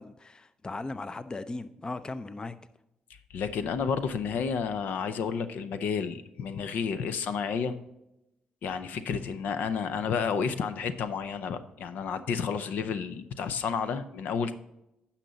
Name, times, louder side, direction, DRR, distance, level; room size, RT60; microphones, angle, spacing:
voice 1, 0.0-2.6 9.3-9.4, left 3 dB, 30° left, 13 dB, 0.6 m, -38 dB
voice 2, 3.3-7.7 8.6-14.5, left 6 dB, 75° left, 11 dB, 0.6 m, -31 dB
9.9 x 5.8 x 4.0 m, 0.89 s
supercardioid pair, 55°, 3 cm